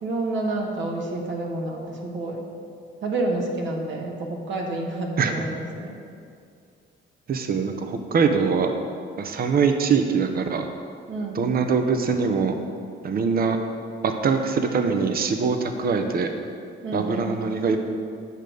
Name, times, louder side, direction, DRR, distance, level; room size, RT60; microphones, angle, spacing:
voice 1, 0.0-2.5 3.0-6.0 11.1-11.4 16.8-17.3, right 2 dB, 70° right, 0 dB, 1.5 m, -29 dB
voice 2, 7.3-8.7 9.2-10.7 11.3-12.6 13.0-13.6 14.0-16.3 16.9-17.8, right 5 dB, 50° right, 6 dB, 0.8 m, -23 dB
8.9 x 6.3 x 5.2 m, 2.3 s
cardioid pair, 90°, 20 cm